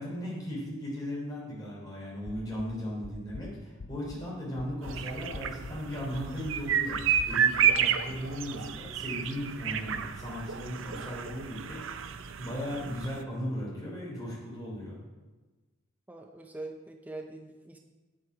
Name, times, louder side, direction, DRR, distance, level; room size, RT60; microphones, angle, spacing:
voice 1, 0.0-7.0 7.3-12.0 12.4-15.0, equal, 20° left, -6 dB, 3.3 m, -37 dB
sound 1, 2.3-4.3 4.6-7.3, left 3 dB, 60° left, 0.5 m, -45 dB
sound 2, 4.8-13.2, right 8 dB, 70° right, 0.5 m, -31 dB
voice 2, 16.1-17.8, right 2 dB, 10° right, 2 dB, 0.5 m, -43 dB
8.4 x 7.4 x 4.7 m, 1.2 s
head